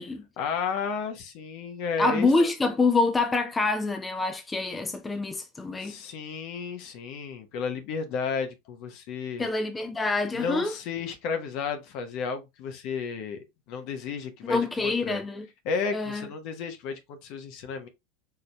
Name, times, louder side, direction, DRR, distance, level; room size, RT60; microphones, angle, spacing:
voice 1, 0.4-2.3 5.8-9.5 10.3-15.2 15.6-17.9, left 5 dB, 55° left, 1.0 m, -33 dB
voice 2, 2.0-5.9 9.4-10.7 14.4-15.5 15.9-16.3, left 3 dB, 15° left, 0.8 m, -26 dB
4.6 x 3.9 x 2.2 m
hypercardioid pair, 85°, 0 cm